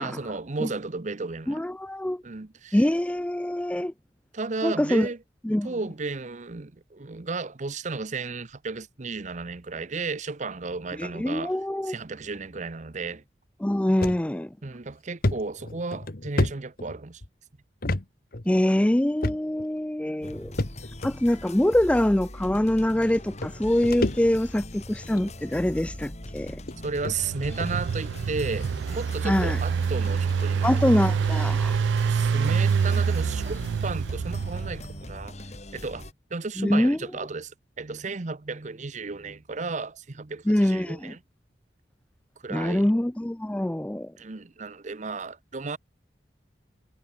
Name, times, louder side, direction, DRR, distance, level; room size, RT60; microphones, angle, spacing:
voice 1, 0.0-1.6 2.2-2.8 4.3-5.2 5.6-11.6 11.9-13.2 14.6-17.2 26.8-31.0 32.0-35.3 35.7-41.2 42.4-42.9 44.2-45.8, right 3 dB, 45° right, 0.8 m, -34 dB
voice 2, 1.5-2.2 2.7-3.9 4.6-5.1 5.4-5.7 11.0-12.0 13.6-14.5 18.5-20.5 21.0-26.6 29.2-29.6 30.6-31.8 36.6-37.0 40.5-41.1 42.5-44.1, left 1 dB, 5° left, 0.4 m, -24 dB
sound 1, 14.0-14.2 14.6-14.7 15.2-17.3 17.8-18.0 18.3-18.5 19.2-19.7 20.6-21.1 22.0-22.1 23.1-23.2 23.4-24.6 25.0-25.3 26.1-26.2 26.7-26.8 27.0-27.2 27.6-27.8, left 1 dB, 55° left, 1.4 m, -29 dB
sound 2, 20.2-36.1, left 1 dB, 40° left, 5.8 m, -40 dB
Engine, 27.0-35.0, right 6 dB, 90° right, 0.3 m, -26 dB
head